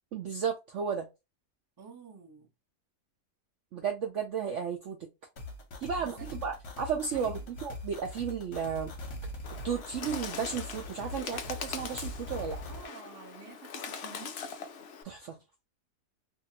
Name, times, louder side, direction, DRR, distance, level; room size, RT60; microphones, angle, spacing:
voice 1, 0.1-1.1 3.7-5.1 5.8-8.9 9.6-12.6 15.0-15.4, right 7 dB, 70° right, 0.7 m, -34 dB
voice 2, 1.8-2.5 6.0-6.5 7.1-7.5 12.7-14.4, right 5 dB, 25° right, 0.5 m, -50 dB
sound 1, 5.4-12.9, left 1 dB, 50° left, 0.9 m, -42 dB
Bird, 9.4-15.0, left 6 dB, 75° left, 0.6 m, -42 dB
2.7 x 2.5 x 2.7 m
omnidirectional pair, 1.8 m